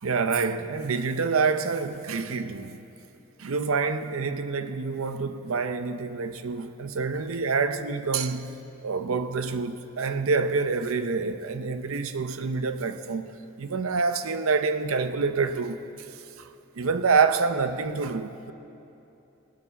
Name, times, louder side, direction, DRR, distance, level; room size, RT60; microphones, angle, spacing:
voice 1, 0.0-2.8 3.4-8.6 8.8-13.3 13.6-16.5 16.8-18.5, right 4 dB, 65° right, 0.6 m, -27 dB
18.5 x 11.5 x 4.1 m
head